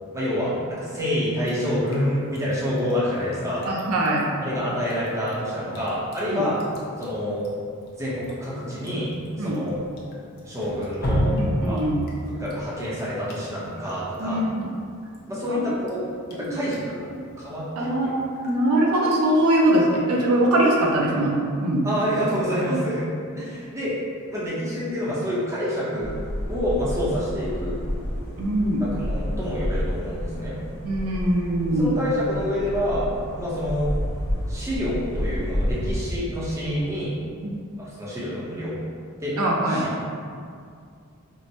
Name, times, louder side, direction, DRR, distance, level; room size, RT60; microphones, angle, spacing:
voice 1, 0.1-3.7 4.4-6.6 7.0-7.5 8.0-10.1 10.4-11.8 12.3-14.4 15.3-16.0 16.3-17.1 17.4-18.1 21.8-23.1 23.3-24.0 24.3-26.2 26.5-27.8 28.8-30.6 31.7-33.9 34.5-37.2 37.8-38.8 39.2-39.4 39.6-39.9, equal, 15° right, -8 dB, 0.7 m, -27 dB
Drip, 1.4-19.7, equal, 45° left, 0.5 m, -35 dB
voice 2, 3.7-4.3 6.3-6.4 9.4-9.6 11.3-12.0 14.2-14.7 15.5-15.7 16.4-16.6 17.1-17.2 17.8-21.8 22.7-22.8 28.4-28.8 30.8-31.9 37.4-37.6 39.4-39.9, right 1 dB, 75° right, -2 dB, 0.5 m, -22 dB
sound 1, 26.0-35.9, equal, 70° left, 0.8 m, -30 dB
4.6 x 2.1 x 2.7 m, 2.3 s
head